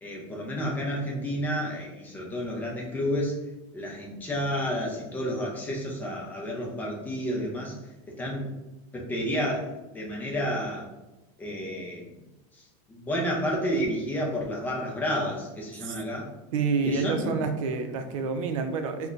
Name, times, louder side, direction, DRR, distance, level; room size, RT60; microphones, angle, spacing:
voice 1, 0.0-3.4 3.7-7.8 8.2-8.5 8.9-9.6 9.9-10.9 11.4-12.1 12.5-16.3 16.8-17.4, equal, 10° left, -2 dB, 0.4 m, -30 dB
voice 2, 16.5-19.1, right 5 dB, 85° right, 7 dB, 0.5 m, -28 dB
3.8 x 2.2 x 2.4 m, 1.0 s
supercardioid pair, 175°, 17 cm